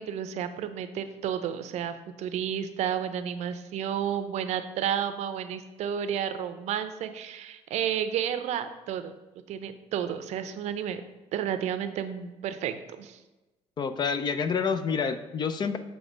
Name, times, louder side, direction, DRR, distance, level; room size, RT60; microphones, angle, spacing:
voice 1, 0.0-9.1 9.5-11.0 11.3-13.2, right 9 dB, 65° right, 10 dB, 0.6 m, -31 dB
voice 2, 13.8-15.8, left 6 dB, 35° left, 10 dB, 0.5 m, -28 dB
7.1 x 3.3 x 5.2 m, 1.1 s
cardioid pair, 120°, 12 cm